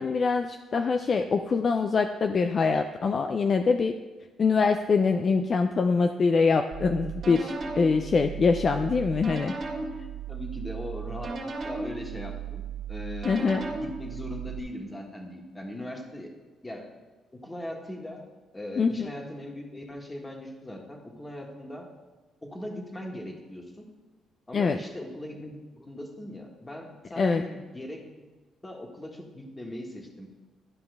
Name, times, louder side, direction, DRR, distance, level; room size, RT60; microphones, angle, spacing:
voice 1, 0.0-3.9 4.4-9.5 13.2-13.6 18.8-19.1 24.5-24.8 27.2-27.5, left 4 dB, 45° left, 6 dB, 0.4 m, -24 dB
sound 1, 6.7-14.6, right 5 dB, 50° right, 2.1 m, -36 dB
voice 2, 10.3-16.3 16.6-16.9 17.3-18.2 18.5-21.9 22.4-23.8 24.5-28.0 28.6-30.3, left 1 dB, 15° left, 1 dB, 1.6 m, -40 dB
12.0 x 5.2 x 3.5 m, 1.3 s
cardioid pair, 90°, 0 cm